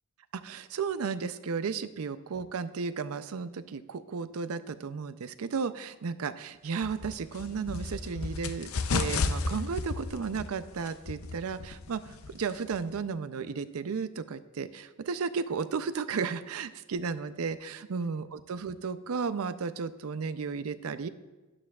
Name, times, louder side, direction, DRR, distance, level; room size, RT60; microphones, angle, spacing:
voice 1, 0.3-21.1, right 5 dB, 80° right, 13 dB, 0.5 m, -34 dB
sound 1, 6.8-13.0, left 4 dB, 75° left, 0.6 m, -34 dB
12.0 x 9.9 x 2.3 m, 1.2 s
head